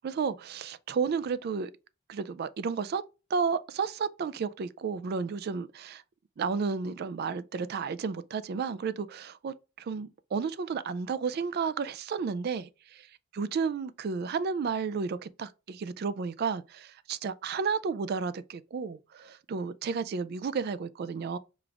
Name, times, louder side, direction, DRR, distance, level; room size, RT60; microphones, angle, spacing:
voice 1, 0.0-1.7 2.1-3.0 3.3-6.0 6.4-13.1 13.3-21.4, right 5 dB, 45° right, 0.3 m, -32 dB
5.0 x 2.4 x 3.3 m
head